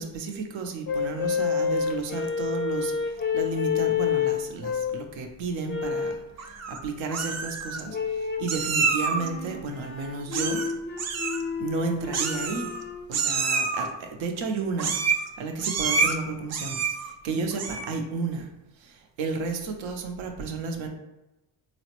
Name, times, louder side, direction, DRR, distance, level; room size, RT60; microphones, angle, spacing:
voice 1, 0.0-10.7 11.6-12.7 13.1-14.9 15.4-18.5 18.8-20.9, right 4 dB, 75° right, 4 dB, 0.7 m, -32 dB
sound 1, 0.9-5.1 5.7-6.3 7.9-8.6 9.1-13.1, left 6 dB, 25° left, 0.4 m, -29 dB
Meow, 6.4-6.8 7.1-7.8 8.5-9.3 10.3-10.7 11.0-11.4 12.1-12.8 13.1-13.9 14.8-15.3 15.6-16.1 16.5-17.1 17.5-17.9, right 5 dB, 35° right, 0.5 m, -27 dB
4.0 x 2.0 x 2.9 m, 0.97 s
supercardioid pair, 70°, 47 cm